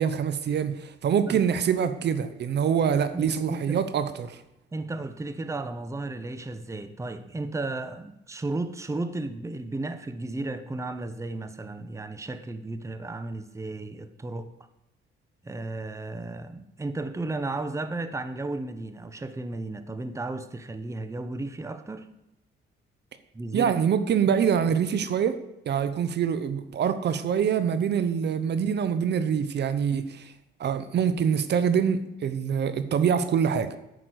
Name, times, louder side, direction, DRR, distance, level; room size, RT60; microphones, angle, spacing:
voice 1, 0.0-4.4 23.5-25.4 25.7-30.3 30.6-33.8, right 7 dB, 60° right, 12 dB, 0.8 m, -25 dB
voice 2, 2.8-3.8 4.7-14.5 15.4-22.1 23.3-23.7, right 2 dB, 15° right, 11 dB, 0.8 m, -34 dB
9.6 x 6.0 x 7.8 m, 0.89 s
cardioid pair, 90°, 20 cm